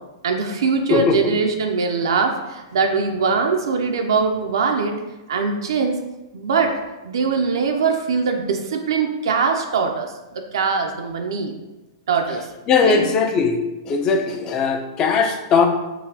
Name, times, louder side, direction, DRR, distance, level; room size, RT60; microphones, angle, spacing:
voice 1, 0.2-5.0 5.3-6.0 6.3-6.8 7.0-11.5 12.1-12.5 12.8-13.1, right 5 dB, 80° right, 4 dB, 0.4 m, -22 dB
voice 2, 12.7-13.6 13.9-15.7, left 5 dB, 25° left, 5 dB, 0.3 m, -19 dB
3.8 x 2.1 x 2.7 m, 1.0 s
hypercardioid pair, 145°, 2 cm